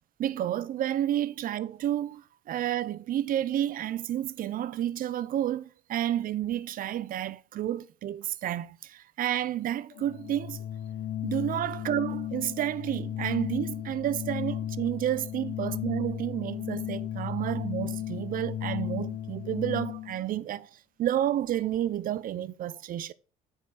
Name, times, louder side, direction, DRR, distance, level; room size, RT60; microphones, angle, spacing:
voice 1, 0.2-10.6 11.2-23.1, right 12 dB, 55° right, 0.6 m, -30 dB
Organ, 9.9-20.2, left 11 dB, 75° left, 0.7 m, -35 dB
9.3 x 5.0 x 4.2 m
cardioid pair, 110°, 17 cm